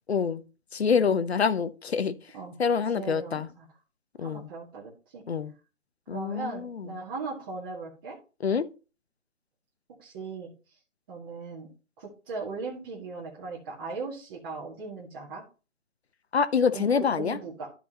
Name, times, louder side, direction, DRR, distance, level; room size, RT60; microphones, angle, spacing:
voice 1, 0.1-0.4 0.7-2.1 2.6-3.5 4.2-4.5 5.3-5.5 6.1-6.9 8.4-8.7 16.3-17.4, left 6 dB, 55° left, 0.9 m, -26 dB
voice 2, 2.9-3.7 4.2-5.2 6.1-8.2 10.0-10.5 11.1-11.7 12.0-15.4 16.7-17.7, right 4 dB, 20° right, 1.6 m, -38 dB
13.0 x 4.7 x 2.9 m
hypercardioid pair, 160°, 37 cm